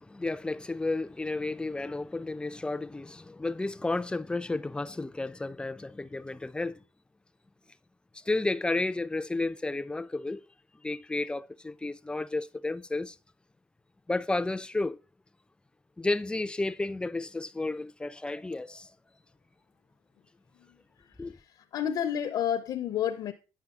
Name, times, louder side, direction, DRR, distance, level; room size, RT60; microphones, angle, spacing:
voice 1, 0.0-6.8 8.1-10.5 10.8-13.2 14.1-15.0 16.0-18.9 21.2-21.4, left 2 dB, 15° left, 0.4 m, -32 dB
voice 2, 21.0-23.3, left 9 dB, 70° left, 0.6 m, -31 dB
9.3 x 5.5 x 3.6 m
cardioid pair, 85°, 7 cm